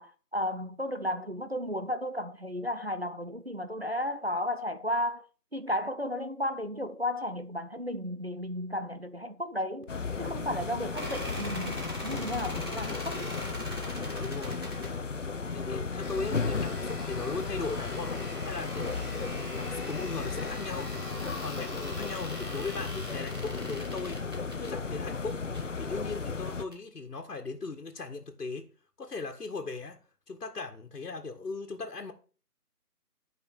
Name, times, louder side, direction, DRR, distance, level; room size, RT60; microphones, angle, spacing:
voice 1, 0.0-5.3 5.5-9.9 10.2-13.3, left 1 dB, 45° right, 0.5 m, -33 dB
sound 1, 9.9-26.6, left 4 dB, 50° left, 0.7 m, -35 dB
sound 2, 10.9-14.9 16.0-24.7 25.4-25.7 26.7-26.8, equal, 15° right, 2.0 m, -42 dB
voice 2, 14.2-14.6 15.5-19.0 19.3-20.9 21.2-24.2 24.6-25.4 25.8-28.7 29.0-30.0 30.3-32.1, left 3 dB, 70° left, 1.7 m, -38 dB
11.0 x 5.2 x 4.9 m
figure-of-eight pair, 175°, 47 cm